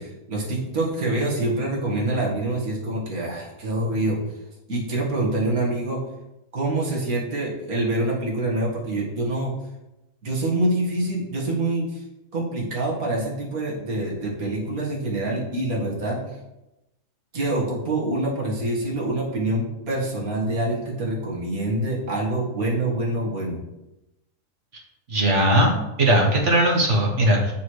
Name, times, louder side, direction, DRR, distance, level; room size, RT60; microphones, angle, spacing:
voice 1, 0.0-4.2 4.7-6.0 6.5-9.5 10.2-12.0 12.3-16.4 17.3-23.6, right 1 dB, 90° right, -3 dB, 2.2 m, -26 dB
voice 2, 25.1-27.5, right 1 dB, 60° right, -1 dB, 1.4 m, -19 dB
7.0 x 6.4 x 3.2 m, 0.93 s
omnidirectional pair, 1.5 m